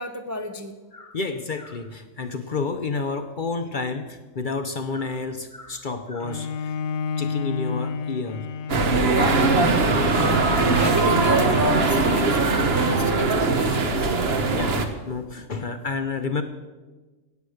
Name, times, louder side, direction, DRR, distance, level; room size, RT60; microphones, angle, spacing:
voice 1, 0.0-0.7 9.1-9.4 10.7-14.1, equal, 20° right, 5 dB, 0.5 m, -30 dB
voice 2, 0.9-6.8 7.2-8.5 9.8-10.0 10.6-10.8 14.5-16.4, left 4 dB, 45° left, 8 dB, 0.8 m, -30 dB
Bowed string instrument, 6.2-11.4, left 5 dB, 80° left, 1.0 m, -32 dB
sound 1, 8.7-14.9, right 3 dB, 50° right, 1.3 m, -21 dB
sound 2, 9.1-14.1, right 1 dB, 70° right, 3.0 m, -31 dB
17.0 x 8.2 x 6.4 m, 1.3 s
omnidirectional pair, 1.4 m